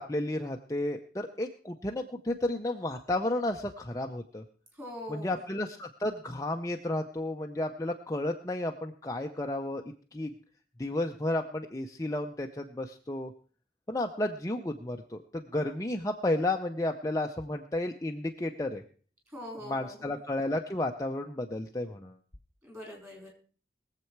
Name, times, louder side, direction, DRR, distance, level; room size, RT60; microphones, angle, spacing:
voice 1, 0.0-4.4 5.1-9.8 10.1-10.3 10.8-13.3 13.9-18.8 19.6-22.2, left 1 dB, 20° left, 3 dB, 0.6 m, -32 dB
voice 2, 4.8-5.4 19.3-20.2 22.6-23.3, left 1 dB, 15° right, 0 dB, 4.2 m, -43 dB
21.0 x 7.6 x 4.6 m, 0.41 s
head